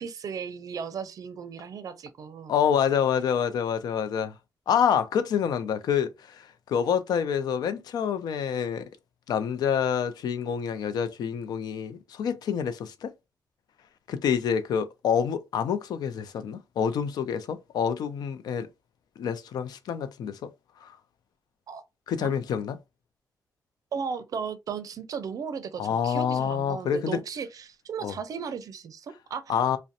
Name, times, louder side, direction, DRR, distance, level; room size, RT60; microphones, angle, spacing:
voice 1, 0.0-2.5 21.7-21.8 22.2-22.3 23.9-29.6, right 6 dB, 65° right, 0.4 m, -36 dB
voice 2, 2.5-4.3 4.7-8.9 9.3-13.1 14.1-18.7 19.2-20.5 20.8-20.9 22.1-22.8 25.8-27.2 28.0-28.2 29.5-29.8, left 8 dB, 85° left, 0.4 m, -27 dB
2.5 x 2.1 x 2.6 m
cardioid pair, 110°, 7 cm